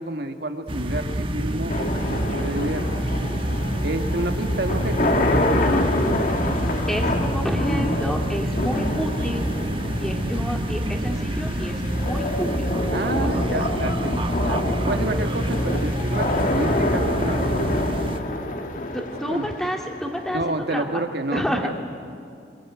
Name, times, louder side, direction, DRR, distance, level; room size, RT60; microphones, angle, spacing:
voice 1, 0.0-2.8 3.8-5.2 12.9-17.7 19.2-19.5 20.3-21.7, right 1 dB, 65° right, 6 dB, 1.8 m, -29 dB
sound 1, 0.7-18.2, right 1 dB, 30° right, 1.4 m, -26 dB
sound 2, 1.7-20.7, left 1 dB, 50° left, 2.0 m, -27 dB
voice 2, 6.9-9.5 10.0-12.7 13.0-13.6 18.9-21.0 21.3-21.7, equal, ahead, 1 dB, 2.3 m, -29 dB
24.5 x 23.0 x 9.7 m, 2.4 s
head